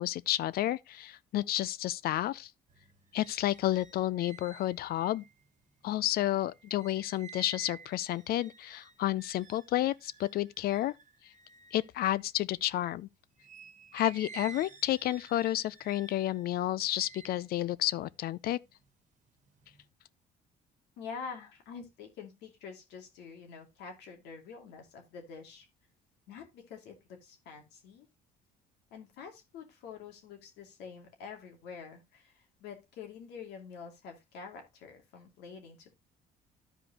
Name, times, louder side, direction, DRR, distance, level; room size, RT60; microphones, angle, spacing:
voice 1, 0.0-2.5 3.1-5.2 5.8-10.9 11.7-13.1 13.9-18.6, left 14 dB, 65° left, 0.5 m, -31 dB
sound 1, 2.7-12.9 13.4-18.9 19.3-19.9, right 6 dB, 45° right, 1.4 m, -53 dB
voice 2, 21.0-25.7 26.3-26.9 27.2-28.1 28.9-35.9, left 6 dB, 85° left, 2.6 m, -47 dB
13.0 x 5.0 x 2.9 m
cardioid pair, 110°, 17 cm